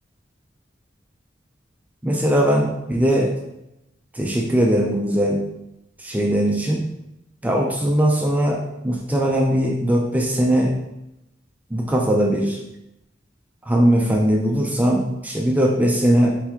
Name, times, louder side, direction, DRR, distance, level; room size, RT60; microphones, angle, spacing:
voice 1, 2.0-3.3 4.1-5.4 6.0-6.9 7.4-10.7 11.7-12.6 13.7-16.3, right 1 dB, 10° right, 0 dB, 0.4 m, -20 dB
4.5 x 3.3 x 3.4 m, 0.88 s
head